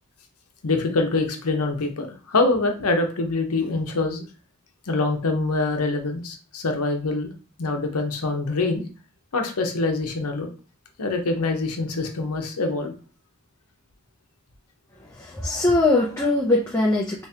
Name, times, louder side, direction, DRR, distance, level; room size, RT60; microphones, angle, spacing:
voice 1, 0.6-4.2 4.9-7.3 7.6-8.8 9.3-10.5 11.0-12.9, left 3 dB, 85° left, 4 dB, 0.8 m, -24 dB
voice 2, 15.2-17.3, left 2 dB, 10° left, -5 dB, 0.5 m, -21 dB
3.5 x 3.1 x 2.8 m, 0.36 s
head